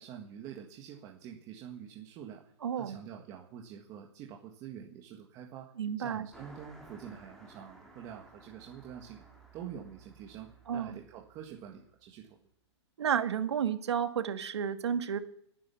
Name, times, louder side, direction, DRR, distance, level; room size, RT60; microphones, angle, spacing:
voice 1, 0.0-2.4 2.8-5.7 6.0-9.2 9.5-12.4, right 9 dB, 20° right, 1 dB, 1.7 m, -46 dB
voice 2, 2.6-3.0 5.8-6.3 10.7-11.0 13.0-15.2, right 8 dB, 75° right, 8 dB, 2.3 m, -31 dB
Car passing by, 6.3-12.1, right 2 dB, 5° left, 3.2 m, -56 dB
20.0 x 10.5 x 7.0 m, 0.72 s
hypercardioid pair, 165°, 14 cm